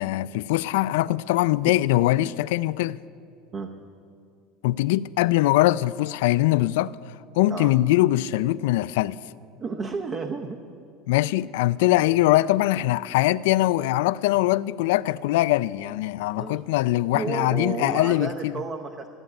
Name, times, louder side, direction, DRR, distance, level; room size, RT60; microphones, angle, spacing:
voice 1, 0.0-3.0 4.6-6.9 7.4-9.2 11.1-18.6, left 16 dB, 85° left, 0.3 m, -22 dB
voice 2, 9.6-10.6 16.4-16.6 17.1-19.1, right 4 dB, 25° right, 0.7 m, -31 dB
14.5 x 9.1 x 8.5 m
cardioid pair, 165°, 0 cm